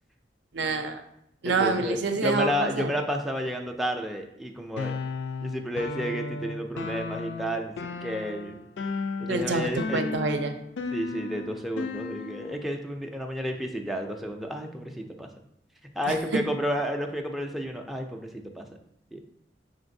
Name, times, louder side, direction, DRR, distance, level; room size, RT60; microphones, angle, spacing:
voice 1, 0.5-1.0 1.4-2.9 9.3-10.5 16.1-16.2, right 3 dB, 75° right, 7 dB, 0.5 m, -27 dB
voice 2, 1.4-4.9 5.4-7.7 8.0-8.6 9.2-10.0 10.9-15.3 16.0-18.7 19.1-19.2, equal, ahead, 2 dB, 0.3 m, -31 dB
sound 1, 4.8-12.6, left 4 dB, 70° left, 0.4 m, -35 dB
5.0 x 3.8 x 2.6 m, 0.76 s
head